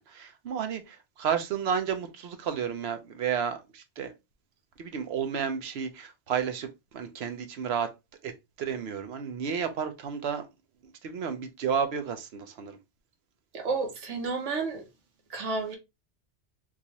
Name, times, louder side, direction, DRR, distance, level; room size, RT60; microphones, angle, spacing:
voice 1, 0.0-4.1 4.8-7.9 8.2-8.3 8.6-10.4 10.8-12.8, right 7 dB, 65° right, 0.8 m, -32 dB
voice 2, 13.5-14.8 15.3-15.8, right 4 dB, 90° right, 1.2 m, -31 dB
3.8 x 2.5 x 2.9 m
omnidirectional pair, 1.2 m